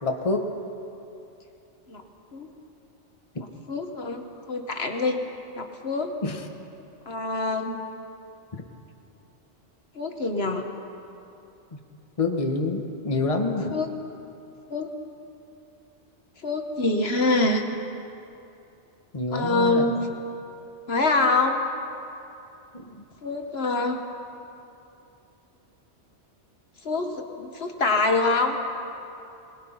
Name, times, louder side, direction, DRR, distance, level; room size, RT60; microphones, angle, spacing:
voice 1, 0.0-0.5 6.2-6.5 8.5-8.6 11.7-11.8 12.2-13.8 19.1-19.9 22.7-23.0, left 3 dB, 30° left, 3 dB, 1.3 m, -27 dB
voice 2, 3.7-5.2 5.6-6.1 7.1-7.8 10.0-10.7 13.7-13.9 14.7-14.9 16.4-17.6 19.3-19.9 20.9-21.6 23.2-24.0 26.8-28.6, left 3 dB, 60° left, 4 dB, 1.5 m, -25 dB
22.0 x 21.0 x 5.7 m, 2.8 s
omnidirectional pair, 1.2 m